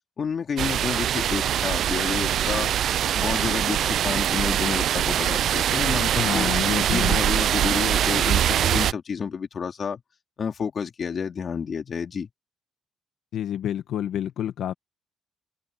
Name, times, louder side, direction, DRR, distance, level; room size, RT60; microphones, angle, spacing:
voice 1, 0.2-2.7 3.1-6.5 6.9-10.0 10.4-12.3, left 6 dB, 50° left, 3.9 m, -30 dB
sound 1, 0.6-8.9, right 10 dB, 70° right, 0.4 m, -23 dB
voice 2, 6.2-7.2 13.3-14.7, left 10 dB, 75° left, 1.2 m, -28 dB
open air
cardioid pair, 90°, 0 cm